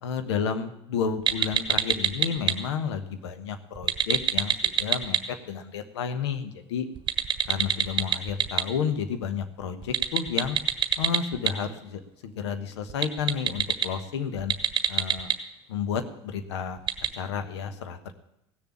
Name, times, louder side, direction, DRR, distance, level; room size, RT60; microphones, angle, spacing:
voice 1, 0.0-6.9 7.5-10.6 11.0-14.5 14.9-15.3 15.7-16.8 17.1-18.1, left 7 dB, 70° left, 9 dB, 1.3 m, -31 dB
sound 1, 1.3-2.5 3.8-5.2 7.0-8.6 9.8-11.5 12.9-13.8 14.4-15.3 16.9-17.1, right 10 dB, 35° right, 1.4 m, -23 dB
16.5 x 7.0 x 8.3 m, 0.83 s
figure-of-eight pair, 70°, 15 cm